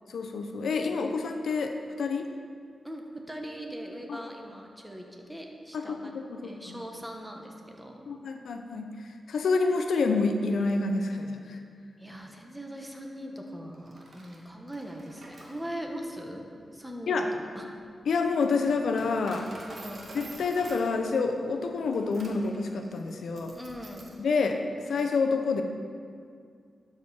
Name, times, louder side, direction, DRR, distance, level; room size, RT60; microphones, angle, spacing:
voice 1, 0.1-1.7 2.0-2.3 4.1-4.2 5.7-6.8 8.1-8.9 9.3-11.6 17.1-17.3 18.1-19.5 20.1-23.5 24.2-24.6 24.9-25.6, left 4 dB, 85° left, 5 dB, 0.6 m, -28 dB
voice 2, 2.8-6.1 6.4-8.0 12.0-16.4 16.7-17.3 17.5-17.7 19.5-20.1 23.5-24.1, equal, 10° right, 1 dB, 1.2 m, -40 dB
Coin (dropping), 13.7-24.2, right 2 dB, 60° right, 1.4 m, -49 dB
12.0 x 4.9 x 4.3 m, 2.2 s
cardioid pair, 70°, 0 cm